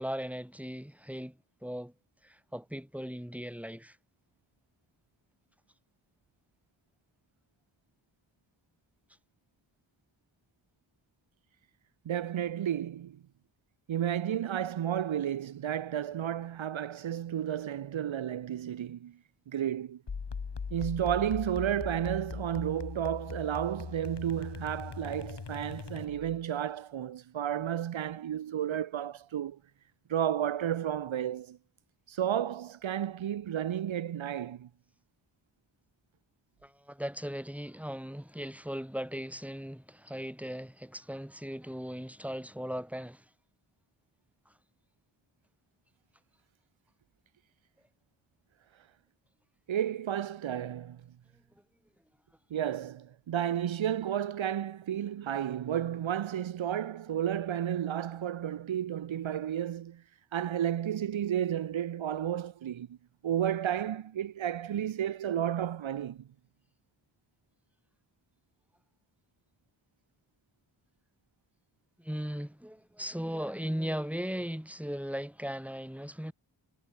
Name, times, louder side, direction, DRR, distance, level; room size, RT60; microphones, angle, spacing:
voice 1, 0.0-1.9 2.2-4.0 36.6-43.3 44.5-44.6 72.0-76.3, equal, 5° right, 7.1 m, -38 dB
voice 2, 12.1-13.2 13.9-19.2 19.5-20.0 20.7-29.6 30.1-31.6 32.1-34.7 49.7-51.0 52.5-60.0 60.3-63.0 63.2-66.3, right 10 dB, 80° right, 0.8 m, -32 dB
sound 1, 20.1-26.4, left 5 dB, 60° left, 2.7 m, -40 dB
wide cardioid pair, 105°, 46 cm